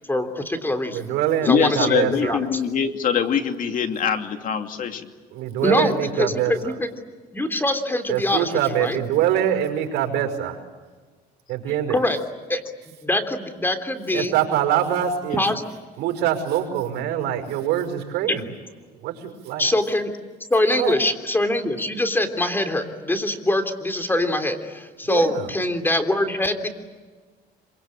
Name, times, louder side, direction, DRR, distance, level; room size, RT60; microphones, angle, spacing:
voice 1, 0.1-1.1 1.4-2.6 5.6-6.9 7.3-8.5 8.8-9.0 11.9-12.2 12.5-12.6 13.0-14.3 15.4-15.6 19.6-20.1 20.5-26.7, left 1 dB, 10° left, 7 dB, 3.3 m, -23 dB
voice 2, 0.9-2.4 5.3-6.7 8.1-10.6 11.5-12.0 14.1-15.4 16.0-18.5 19.0-19.7 20.7-21.0 25.0-25.5, right 10 dB, 90° right, 5 dB, 5.5 m, -24 dB
voice 3, 1.5-5.0, left 7 dB, 55° left, 6 dB, 2.8 m, -23 dB
27.0 x 25.0 x 8.7 m, 1.4 s
cardioid pair, 110°, 17 cm